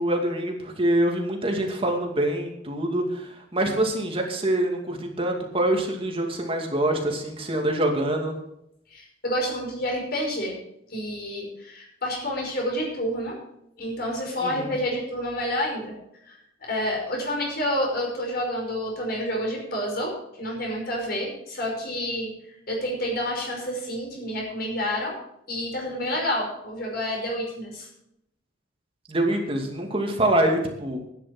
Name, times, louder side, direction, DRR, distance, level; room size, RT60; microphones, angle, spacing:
voice 1, 0.0-8.4 14.4-14.7 29.1-31.0, right 1 dB, 30° right, 2 dB, 2.4 m, -25 dB
voice 2, 8.9-10.6 10.9-13.4 13.8-15.9 16.3-22.3 22.7-25.2 25.5-27.9, equal, 50° left, -1 dB, 5.5 m, -29 dB
12.0 x 10.0 x 6.1 m, 0.77 s
head